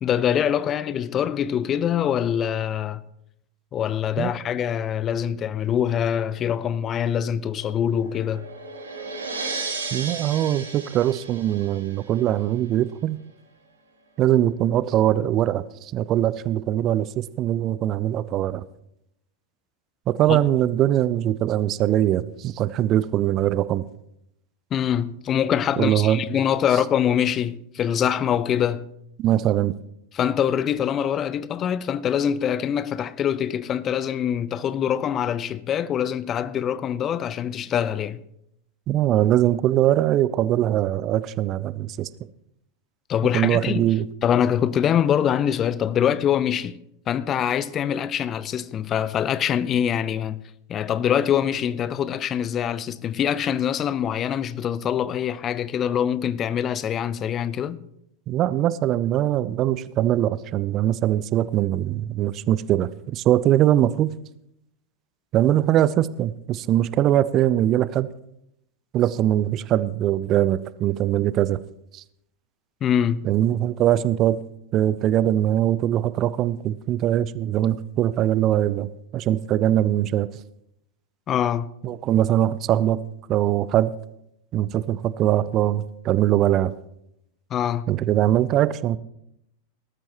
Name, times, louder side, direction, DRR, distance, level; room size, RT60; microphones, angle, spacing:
voice 1, 0.0-3.0 3.7-8.5 20.3-20.4 24.7-28.9 30.1-38.2 43.1-43.9 44.2-46.8 47.1-50.4 50.7-57.8 72.8-73.3 81.3-81.7 87.5-87.8, left 9 dB, 30° left, 0.5 m, -24 dB
sound 1, 7.4-12.4, right 4 dB, 75° right, 3.4 m, -35 dB
voice 2, 9.9-13.2 14.2-18.6 20.1-23.8 25.8-26.2 29.2-29.7 38.9-42.1 43.3-44.1 58.3-64.1 65.3-68.1 68.9-71.6 71.9-72.0 73.2-74.4 74.7-80.3 81.8-83.0 83.3-83.9 84.5-86.7 87.9-89.0, right 12 dB, 35° right, 0.5 m, -22 dB
19.0 x 13.5 x 3.0 m
figure-of-eight pair, 90°, 0 cm